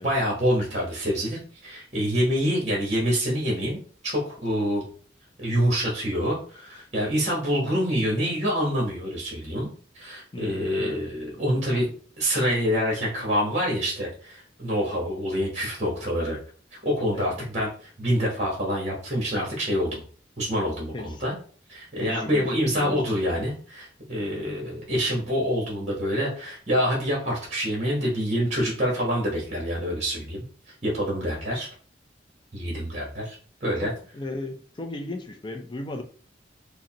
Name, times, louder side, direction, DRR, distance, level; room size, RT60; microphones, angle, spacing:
voice 1, 0.0-4.8 5.4-9.7 9.9-16.4 16.7-20.0 20.4-21.3 21.7-30.4 30.8-31.7 32.5-33.3 33.6-33.9, equal, 40° right, 1.1 m, -26 dB
voice 2, 10.3-11.0 17.1-17.3 20.9-21.2 22.0-23.0 33.8-36.0, left 2 dB, 25° left, 0.4 m, -36 dB
5.0 x 2.1 x 2.9 m
head